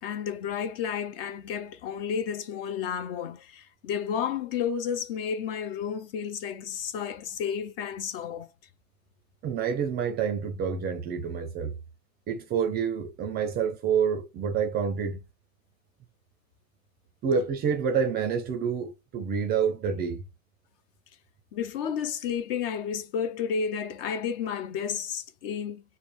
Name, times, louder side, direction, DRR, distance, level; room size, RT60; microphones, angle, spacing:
voice 1, 0.0-8.5 21.5-25.8, left 7 dB, 40° left, 0.4 m, -31 dB
voice 2, 9.4-11.8 12.3-15.2 17.2-20.2, right 6 dB, 20° right, 0.5 m, -28 dB
3.7 x 2.0 x 3.0 m
hypercardioid pair, 105°, 45 cm